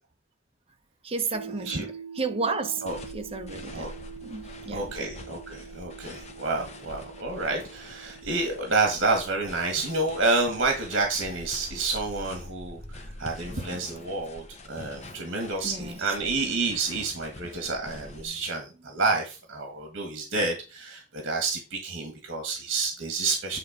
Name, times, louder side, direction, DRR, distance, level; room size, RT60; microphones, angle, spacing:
voice 1, 1.0-2.9 3.1-3.9 4.2-4.9 12.8-13.2 15.6-16.1 18.2-18.4, right 4 dB, 30° right, 0.9 m, -33 dB
sound 1, 1.3-13.4, right 7 dB, 10° right, 2.0 m, -46 dB
sound 2, 2.9-18.3, left 1 dB, 35° left, 1.0 m, -45 dB
voice 2, 4.7-23.6, right 3 dB, 60° right, 1.8 m, -29 dB
9.6 x 3.5 x 5.1 m
head